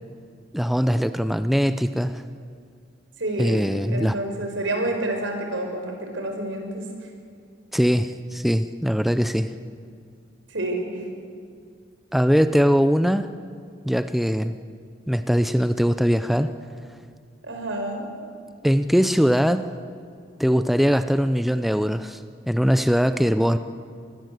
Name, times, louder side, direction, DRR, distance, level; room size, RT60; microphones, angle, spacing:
voice 1, 0.5-2.2 3.4-4.2 7.7-9.5 12.1-13.3 13.8-14.5 15.1-16.5 18.6-19.7 20.4-22.2 22.5-23.6, equal, ahead, 10 dB, 0.6 m, -21 dB
voice 2, 3.2-6.9 10.5-11.0 17.4-18.1, right 1 dB, 80° right, 3 dB, 5.6 m, -28 dB
27.0 x 19.5 x 8.0 m, 2.2 s
head